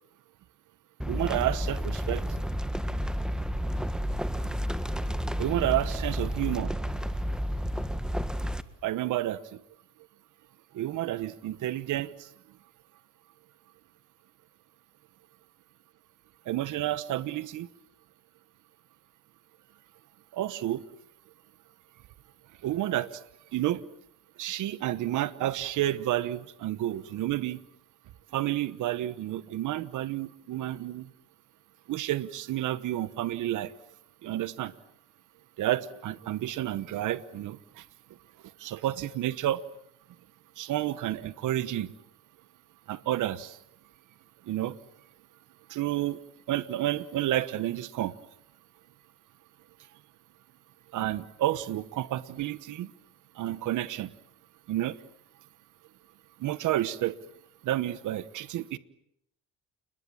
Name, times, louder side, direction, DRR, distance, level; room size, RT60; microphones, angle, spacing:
sound 1, 1.0-8.6, equal, ahead, 1.6 m, -31 dB
voice 1, 1.1-2.2 5.4-6.7 8.8-9.4 10.7-12.3 16.5-17.7 20.3-20.8 22.6-23.2 23.5-23.8 24.4-27.6 28.3-31.1 31.9-33.7 34.2-34.7 35.6-37.8 38.6-39.6 40.6-41.9 42.9-43.6 44.5-44.7 45.7-46.2 46.5-48.1 50.9-52.9 53.4-54.1 54.7-55.0 56.4-57.1 57.6-58.8, right 13 dB, 80° right, 1.2 m, -30 dB
29.5 x 21.0 x 8.8 m
cardioid pair, 90°, 30 cm